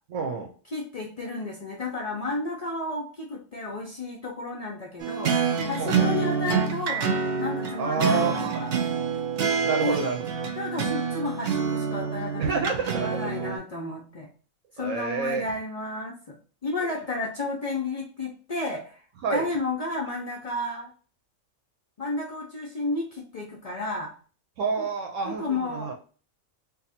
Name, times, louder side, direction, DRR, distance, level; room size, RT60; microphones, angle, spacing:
voice 1, 0.1-0.5 5.8-6.1 7.8-8.6 9.6-10.3 12.4-13.2 14.8-15.5 16.8-16.9 19.2-19.5 24.6-25.9, right 5 dB, 75° right, 3 dB, 0.9 m, -28 dB
voice 2, 0.7-7.1 7.4-8.8 9.8-10.1 10.6-12.4 13.0-14.3 14.8-16.4 16.6-19.0 19.3-20.9 22.0-24.1 24.8-24.9 25.2-25.9, left 2 dB, 60° left, -1 dB, 0.4 m, -32 dB
sound 1, 5.0-13.6, right 5 dB, 60° right, 0.6 m, -27 dB
2.7 x 2.3 x 4.1 m, 0.39 s
omnidirectional pair, 1.4 m